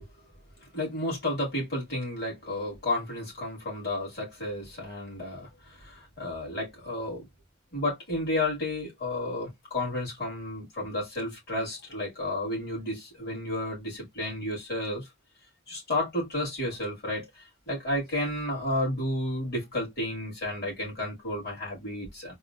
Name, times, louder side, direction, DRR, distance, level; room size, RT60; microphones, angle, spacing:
voice 1, 0.7-7.3 7.7-15.0 15.7-17.3 17.7-22.3, left 1 dB, 55° left, 2.5 m, -32 dB
4.0 x 2.3 x 2.6 m
head